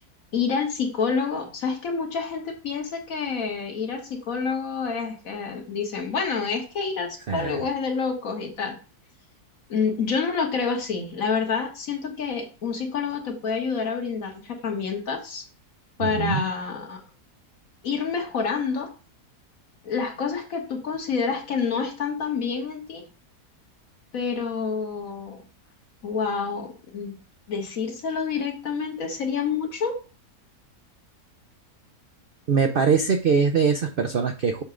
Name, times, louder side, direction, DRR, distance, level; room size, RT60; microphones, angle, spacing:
voice 1, 0.3-8.8 9.7-15.4 16.0-17.0 17.8-18.9 19.8-23.0 24.1-25.4 26.0-27.2 27.5-30.0, left 5 dB, 60° left, 3 dB, 1.7 m, -28 dB
voice 2, 7.3-7.7 16.0-16.4 32.5-34.6, right 6 dB, 65° right, 5 dB, 0.5 m, -22 dB
7.1 x 3.6 x 5.0 m, 0.35 s
omnidirectional pair, 1.7 m